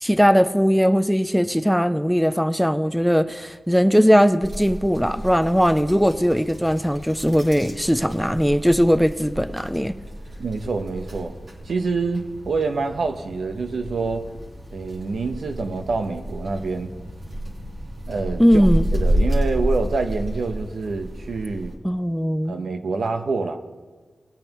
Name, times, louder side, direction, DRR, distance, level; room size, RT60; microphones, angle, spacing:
voice 1, 0.0-9.9 18.4-18.9 21.8-22.5, equal, ahead, 0.5 m, -19 dB
sound 1, 4.4-21.7, right 1 dB, 50° right, 2.9 m, -30 dB
voice 2, 10.4-11.3 11.6-14.3 14.7-16.9 18.1-18.7 18.9-21.7 22.5-23.6, right 4 dB, 85° right, 1.0 m, -26 dB
19.0 x 8.8 x 3.0 m
wide cardioid pair, 85°, 0 cm